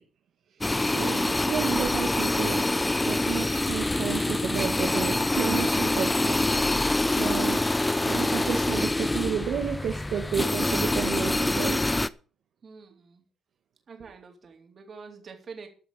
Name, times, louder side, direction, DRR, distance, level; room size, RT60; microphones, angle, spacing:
sound 1, 0.6-12.1, left 2 dB, 15° left, 0.6 m, -25 dB
voice 1, 0.8-2.6 3.0-7.6 8.0-11.8, right 8 dB, 70° right, 2 dB, 1.6 m, -32 dB
voice 2, 12.6-13.2 13.9-15.7, right 5 dB, 45° right, 4 dB, 3.8 m, -46 dB
14.5 x 6.0 x 6.9 m, 0.39 s
cardioid pair, 90°, 0 cm